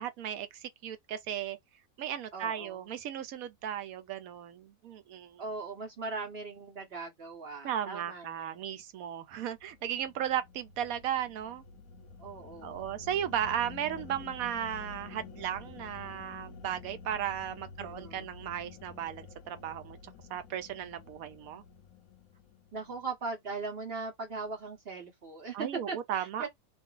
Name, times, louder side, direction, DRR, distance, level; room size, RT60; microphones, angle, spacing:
voice 1, 0.0-1.6 2.0-5.4 7.6-11.6 12.6-20.0 20.3-21.6 25.5-26.5, right 10 dB, 70° right, 1.0 m, -35 dB
voice 2, 2.3-2.9 5.4-8.6 12.2-12.9 17.8-18.3 22.7-26.5, right 4 dB, 45° right, 1.1 m, -39 dB
sound 1, 9.5-23.1, left 6 dB, 70° left, 1.0 m, -50 dB
2.6 x 2.5 x 3.7 m
omnidirectional pair, 1.6 m